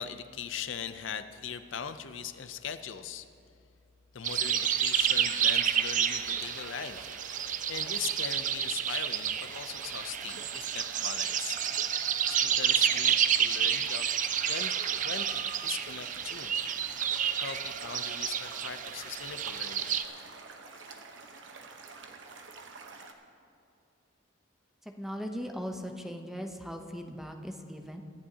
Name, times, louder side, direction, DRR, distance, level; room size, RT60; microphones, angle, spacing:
voice 1, 0.0-3.3 4.1-11.6 12.0-14.1 14.4-16.5 17.4-19.9, left 7 dB, 70° left, 11 dB, 0.6 m, -40 dB
sound 1, 4.2-20.0, right 8 dB, 40° right, 0.5 m, -30 dB
sound 2, 4.2-23.1, right 4 dB, 70° right, 1.0 m, -48 dB
voice 2, 24.8-28.0, equal, ahead, 4 dB, 0.7 m, -39 dB
24.0 x 11.0 x 2.9 m, 2.5 s
head